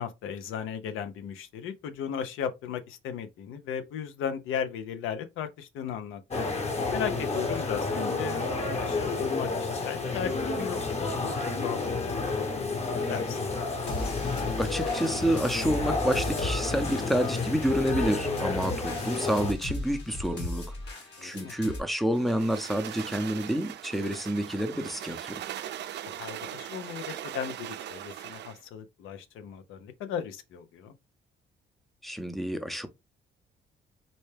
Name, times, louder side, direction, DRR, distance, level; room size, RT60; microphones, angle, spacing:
voice 1, 0.0-6.5 6.9-13.5 18.5-18.6 21.2-21.6 26.2-30.9, left 8 dB, 90° left, 0.6 m, -36 dB
sound 1, 6.3-19.5, left 3 dB, 35° left, 1.0 m, -30 dB
sound 2, 13.9-21.8, left 1 dB, 60° left, 1.5 m, -37 dB
voice 2, 14.6-20.7 21.2-25.4 32.0-32.9, equal, ahead, 0.5 m, -29 dB
sound 3, 22.1-28.6, right 11 dB, 60° right, 0.4 m, -40 dB
4.1 x 2.2 x 3.2 m
cardioid pair, 90°, 20 cm